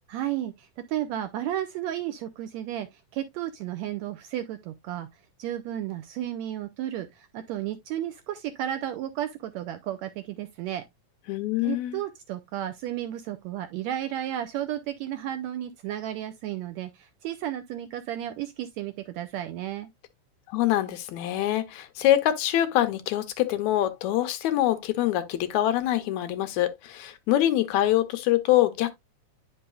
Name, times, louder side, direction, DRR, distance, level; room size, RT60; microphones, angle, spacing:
voice 1, 0.1-5.1 5.4-10.8 11.6-19.9, right 12 dB, 80° right, 1.6 m, -33 dB
voice 2, 11.3-12.0 20.5-28.9, left 13 dB, 75° left, 1.9 m, -24 dB
10.0 x 5.4 x 2.2 m
omnidirectional pair, 3.6 m